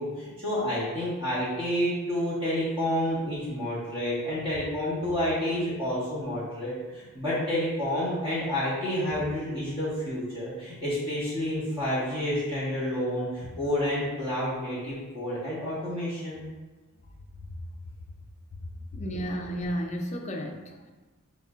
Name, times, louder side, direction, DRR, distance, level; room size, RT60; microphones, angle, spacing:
voice 1, 0.0-16.4, left 1 dB, 25° right, -9 dB, 1.5 m, -29 dB
voice 2, 18.9-20.9, equal, 30° left, 1 dB, 0.6 m, -33 dB
5.7 x 3.6 x 2.5 m, 1.2 s
head